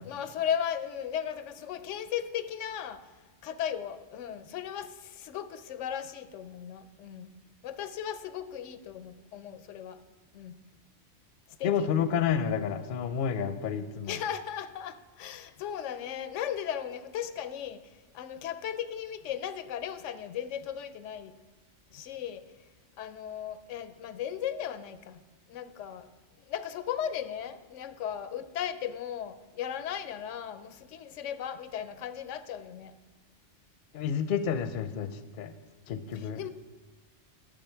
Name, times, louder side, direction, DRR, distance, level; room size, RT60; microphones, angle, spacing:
voice 1, 0.0-3.1 3.4-7.4 7.6-10.0 10.3-10.6 11.6-11.9 14.1-21.3 21.9-22.4 23.0-25.2 25.5-26.1 26.5-32.9 36.1-36.5, left 9 dB, 90° left, 12 dB, 0.9 m, -36 dB
voice 2, 11.6-14.2 33.9-35.5 35.9-36.4, left 7 dB, 55° left, 11 dB, 0.6 m, -30 dB
10.0 x 6.7 x 4.4 m, 1.2 s
omnidirectional pair, 1.2 m